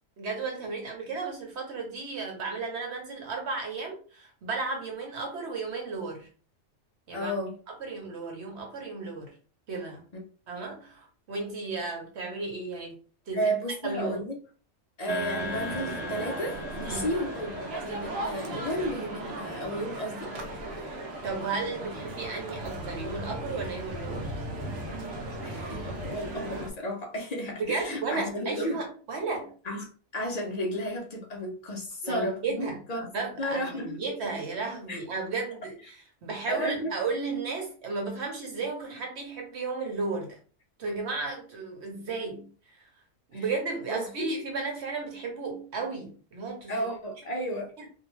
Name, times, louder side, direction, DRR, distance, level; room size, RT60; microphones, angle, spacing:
voice 1, 0.2-6.3 7.1-7.3 7.8-9.3 9.7-10.0 10.5-13.0 13.3-13.5 13.8-14.2 16.8-17.1 21.2-24.4 27.6-29.5 32.0-32.8 33.1-40.4 40.8-42.9 43.3-46.7 47.8-47.9, right 4 dB, 60° right, 1 dB, 1.0 m, -34 dB
voice 2, 7.1-7.6 13.3-14.3 15.0-20.6 25.4-28.8 29.6-33.1 33.4-34.2 34.9-35.0 36.5-36.9 43.3-43.6 43.9-44.3 46.7-47.7, equal, 60° left, 0 dB, 0.4 m, -33 dB
sound 1, 15.1-18.6, left 1 dB, ahead, 0.9 m, -38 dB
Male speech man speaking, 15.4-26.7, right 1 dB, 85° right, 1.0 m, -37 dB
2.6 x 2.1 x 3.0 m, 0.39 s
omnidirectional pair, 1.4 m